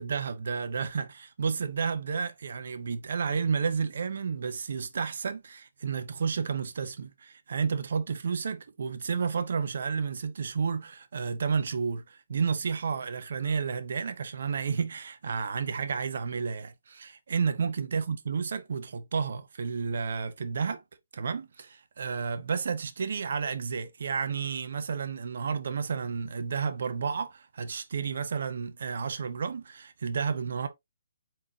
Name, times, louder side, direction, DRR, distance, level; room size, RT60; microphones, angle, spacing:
voice 1, 0.0-20.8 21.1-30.7, right 5 dB, 60° right, 0.8 m, -31 dB
4.4 x 4.2 x 2.8 m
figure-of-eight pair, 145°, 0 cm